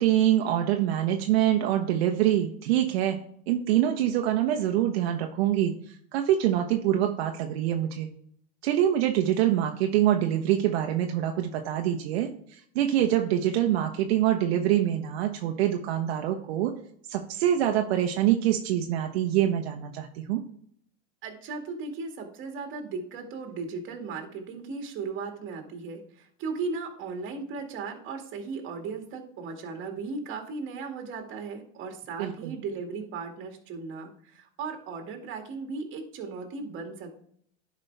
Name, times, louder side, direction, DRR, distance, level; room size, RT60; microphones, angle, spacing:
voice 1, 0.0-3.2 3.5-8.1 8.6-16.7 17.1-20.4 32.2-32.6, right 11 dB, 70° right, 3 dB, 1.0 m, -25 dB
voice 2, 21.2-37.2, right 4 dB, 40° right, 3 dB, 2.2 m, -36 dB
11.0 x 5.3 x 3.4 m, 0.64 s
supercardioid pair, 125°, 31 cm